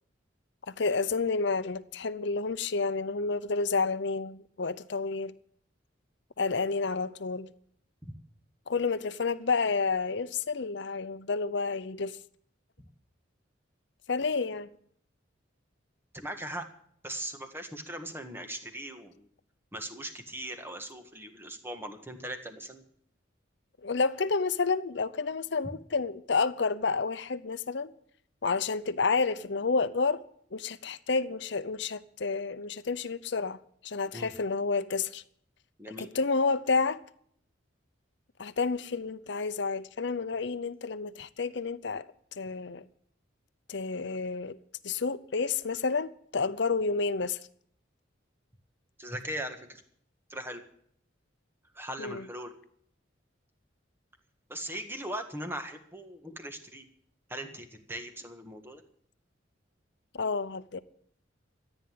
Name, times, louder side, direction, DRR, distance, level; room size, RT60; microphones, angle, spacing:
voice 1, 0.7-5.3 6.4-7.5 8.7-12.2 14.1-14.7 23.8-27.9 28.4-30.2 30.5-33.6 33.8-35.2 36.0-37.0 38.4-42.1 42.4-42.8 43.7-44.6 44.8-47.4 52.0-52.2 60.1-60.8, left 4 dB, 65° left, 0.7 m, -30 dB
voice 2, 16.1-16.6 17.0-19.3 19.7-22.8 34.1-34.3 35.8-36.1 49.0-49.8 50.3-50.6 51.7-52.5 54.5-56.9 57.3-58.8, right 1 dB, 10° right, 1.6 m, -39 dB
14.5 x 9.1 x 9.2 m
head